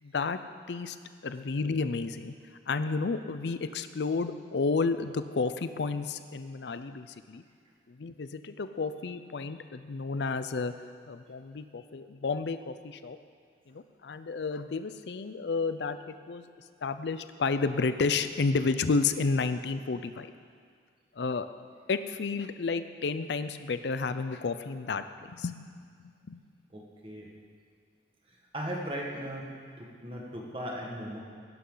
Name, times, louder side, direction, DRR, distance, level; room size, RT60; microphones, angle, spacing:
voice 1, 0.0-0.4 0.7-1.0 1.2-2.3 2.7-7.4 7.9-10.7 11.1-13.2 13.7-16.4 16.8-20.3 21.1-21.5 21.9-25.6 26.0-26.4, left 4 dB, 80° left, 11 dB, 0.5 m, -31 dB
voice 2, 26.7-27.3 28.5-31.2, equal, 30° right, -1 dB, 1.7 m, -38 dB
16.5 x 11.0 x 3.9 m, 2.1 s
head